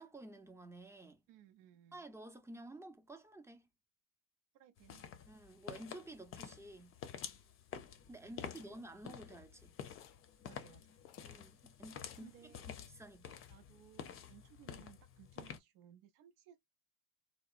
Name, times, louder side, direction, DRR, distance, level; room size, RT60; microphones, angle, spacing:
voice 1, 0.0-1.2 1.9-3.7 5.3-7.0 8.1-9.7 11.2-13.4, right 1 dB, 10° right, 0.6 m, -52 dB
voice 2, 1.3-2.1 4.5-5.1 8.2-8.7 10.4-11.0 12.1-12.8 13.5-16.6, right 10 dB, 70° right, 0.6 m, -61 dB
sound 1, 4.8-15.6, left 8 dB, 40° left, 0.6 m, -50 dB
sound 2, 8.4-9.7 10.0-10.4 10.6-10.7 11.0-11.4 12.1-12.9 13.3-13.8, left 11 dB, 85° left, 0.5 m, -63 dB
2.8 x 2.0 x 2.4 m
supercardioid pair, 90°, 35 cm